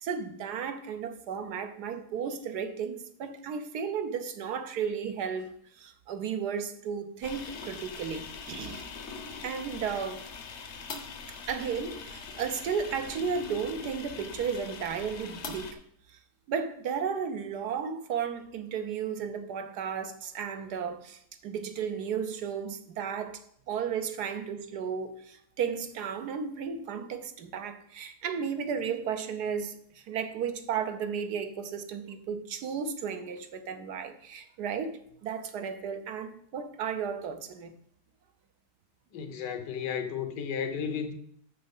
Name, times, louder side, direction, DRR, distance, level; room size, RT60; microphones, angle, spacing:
voice 1, 0.0-8.9 9.4-10.2 11.3-15.8 16.1-16.2 16.5-37.7, right 7 dB, 70° right, 1.3 m, -34 dB
sound 1, 7.2-15.7, left 5 dB, 50° left, 0.9 m, -42 dB
voice 2, 39.1-41.1, left 7 dB, 75° left, 1.5 m, -33 dB
7.0 x 6.5 x 5.4 m
omnidirectional pair, 1.8 m